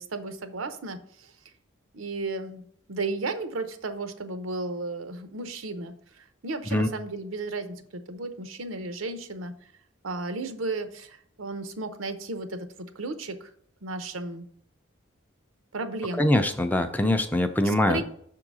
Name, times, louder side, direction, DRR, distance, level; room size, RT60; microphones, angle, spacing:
voice 1, 0.0-1.3 1.9-9.5 10.0-13.5 13.8-14.5 15.7-16.4 17.6-18.1, right 3 dB, 90° right, 9 dB, 0.8 m, -34 dB
voice 2, 16.2-18.0, left 1 dB, 10° left, 7 dB, 0.4 m, -23 dB
6.2 x 3.8 x 6.1 m, 0.64 s
head